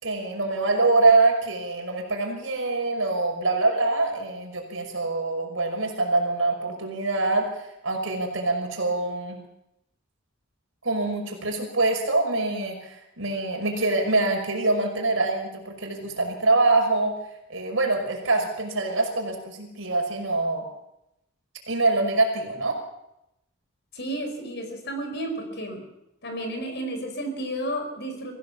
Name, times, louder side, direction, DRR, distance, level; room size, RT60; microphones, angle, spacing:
voice 1, 0.0-9.4 10.8-17.1 17.5-20.6 21.7-22.8, right 3 dB, 65° right, 2 dB, 5.5 m, -24 dB
voice 2, 23.9-25.8 26.2-28.3, right 1 dB, 55° left, 5 dB, 5.0 m, -32 dB
24.0 x 15.5 x 7.2 m, 0.85 s
head